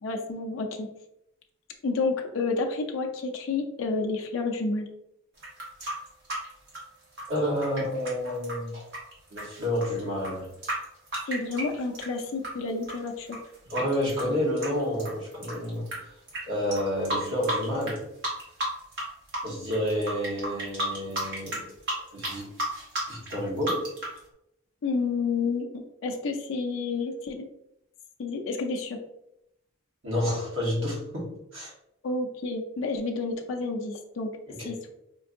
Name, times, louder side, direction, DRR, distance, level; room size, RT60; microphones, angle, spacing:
voice 1, 0.0-0.9 1.8-4.9 11.3-13.4 24.8-27.5 28.2-29.0 32.0-34.3 34.7-34.9, left 3 dB, 65° left, 2 dB, 0.4 m, -30 dB
sound 1, 5.4-12.5 12.8-16.0 16.3-16.4 16.7-18.0 18.2-19.0 19.3-24.2, right 1 dB, 55° right, 1.3 m, -33 dB
voice 2, 7.3-8.7 9.3-10.5 13.7-15.9 16.5-18.0 19.4-21.6 22.1-22.5 23.1-23.8 30.0-31.7 34.5-34.8, equal, 70° right, -4 dB, 1.4 m, -29 dB
4.5 x 2.5 x 2.5 m, 0.82 s
head